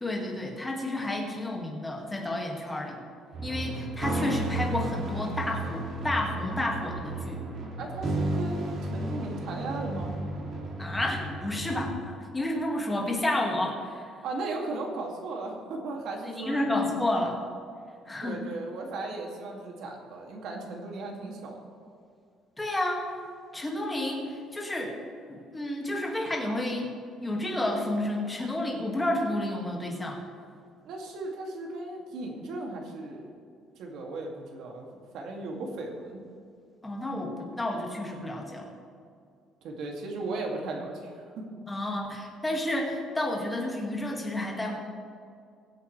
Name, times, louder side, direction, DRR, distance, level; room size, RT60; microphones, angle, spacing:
voice 1, 0.0-3.0 3.4-7.4 10.8-14.1 16.2-17.4 18.1-18.4 22.6-23.1 23.5-25.0 25.3-26.9 27.2-30.2 36.8-38.7 41.7-44.8, left 1 dB, 10° left, 0 dB, 2.0 m, -31 dB
sound 1, 3.3-11.9, right 2 dB, 45° right, 2.3 m, -33 dB
voice 2, 7.8-10.1 14.2-16.6 18.2-21.6 30.8-33.3 33.7-34.9 35.1-36.2 39.6-41.4, right 2 dB, 65° right, 0 dB, 2.3 m, -36 dB
22.0 x 8.2 x 3.3 m, 2.3 s
cardioid pair, 150°, 0 cm